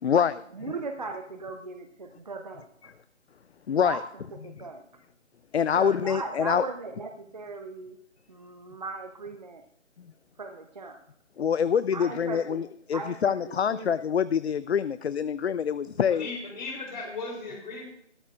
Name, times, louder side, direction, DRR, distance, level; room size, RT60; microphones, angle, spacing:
voice 1, 0.0-0.4 3.7-4.0 5.5-6.6 10.0-10.1 11.4-16.3, left 7 dB, 60° left, 15 dB, 0.5 m, -25 dB
voice 2, 0.5-2.9 3.8-4.0 4.4-4.8 5.7-8.0 8.3-9.6 10.4-11.0 11.9-12.7 12.9-14.0, right 3 dB, 35° right, 6 dB, 0.7 m, -38 dB
voice 3, 16.1-17.8, left 3 dB, 40° left, 2 dB, 3.1 m, -36 dB
15.5 x 13.0 x 2.4 m, 0.72 s
figure-of-eight pair, 155°, 36 cm